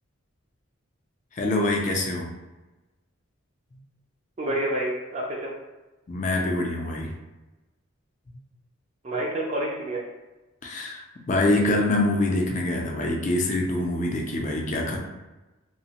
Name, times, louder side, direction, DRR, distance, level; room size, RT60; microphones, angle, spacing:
voice 1, 1.3-2.3 6.1-7.1 10.6-15.0, left 2 dB, 35° left, 0 dB, 0.4 m, -25 dB
voice 2, 4.4-5.5 9.0-10.0, right 1 dB, 30° right, -3 dB, 0.4 m, -28 dB
3.0 x 2.0 x 2.8 m, 1.1 s
head